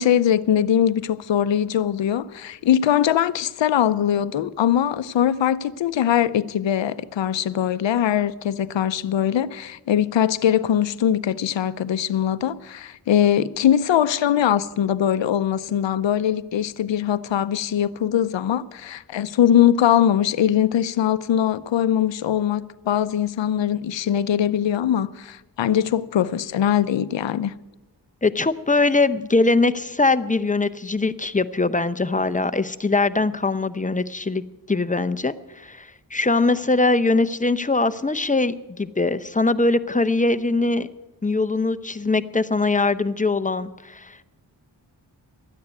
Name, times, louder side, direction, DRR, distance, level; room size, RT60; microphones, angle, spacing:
voice 1, 0.0-27.5, left 10 dB, 80° left, 0.6 m, -21 dB
voice 2, 28.2-34.4 34.7-40.9 41.2-44.2, left 3 dB, 20° left, 0.7 m, -22 dB
12.5 x 9.5 x 9.4 m
cardioid pair, 55°, 44 cm